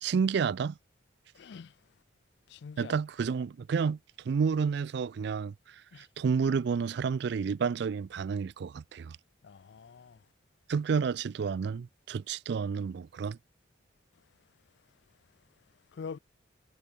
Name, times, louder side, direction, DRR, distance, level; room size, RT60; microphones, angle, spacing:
voice 1, 0.0-0.8 2.8-4.0 4.2-9.2 10.7-13.4, right 6 dB, 55° right, 0.3 m, -30 dB
voice 2, 1.3-1.8 2.5-3.0 5.9-6.1 9.4-10.2 15.9-16.2, left 5 dB, 60° left, 0.4 m, -44 dB
head